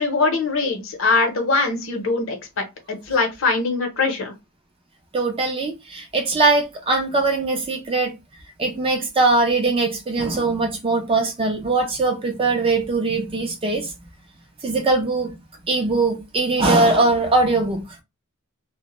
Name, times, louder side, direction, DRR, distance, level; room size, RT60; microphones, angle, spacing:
voice 1, 0.0-4.3, left 3 dB, 60° left, 0.7 m, -22 dB
voice 2, 5.1-8.1 8.6-13.9 14.6-15.3 15.7-17.8, right 3 dB, 25° right, 0.4 m, -21 dB
2.1 x 2.0 x 3.0 m
head